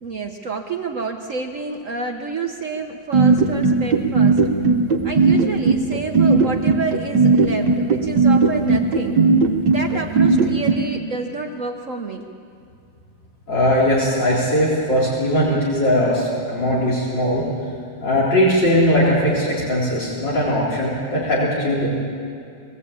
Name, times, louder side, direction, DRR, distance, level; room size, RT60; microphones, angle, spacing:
voice 1, 0.0-4.4 5.0-9.2 9.6-12.2, right 4 dB, 50° right, 3 dB, 1.4 m, -29 dB
sound 1, 3.1-10.8, right 4 dB, 70° right, 1.8 m, -15 dB
voice 2, 13.5-17.5 18.0-21.9, equal, 80° left, -7 dB, 4.5 m, -19 dB
21.5 x 17.0 x 8.6 m, 2.4 s
omnidirectional pair, 1.9 m